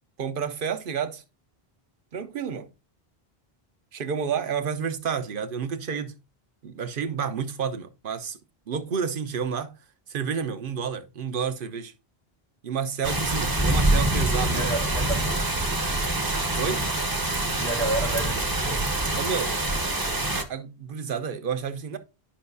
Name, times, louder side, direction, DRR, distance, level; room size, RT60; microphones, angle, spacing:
voice 1, 0.2-1.2 2.1-2.7 3.9-6.1 6.6-8.4 8.7-9.7 10.1-11.9 12.6-14.7 16.6-16.8 19.1-19.5 20.5-22.0, right 6 dB, 60° right, 1.0 m, -30 dB
sound 1, 13.0-20.4, right 1 dB, 25° right, 0.8 m, -25 dB
voice 2, 14.5-15.2 17.6-18.9, right 2 dB, 80° right, 1.7 m, -30 dB
10.5 x 5.4 x 2.7 m
omnidirectional pair, 1.0 m